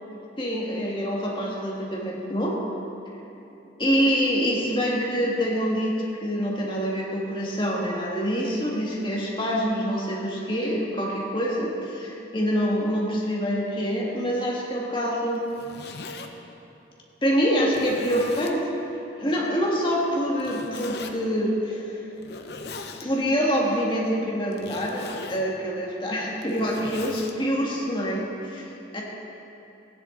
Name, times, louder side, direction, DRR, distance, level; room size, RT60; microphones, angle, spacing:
voice 1, 0.4-2.6 3.8-5.9 6.2-15.5 17.2-18.7 19.2-22.0 23.0-29.0, equal, 25° left, -3 dB, 1.7 m, -26 dB
Zipper (clothing), 15.4-16.3 17.0-17.1 17.7-18.6 20.4-21.1 22.2-23.1 24.5-25.5 26.2-27.3, left 4 dB, 65° left, 0.8 m, -39 dB
16.0 x 10.0 x 3.9 m, 2.9 s
head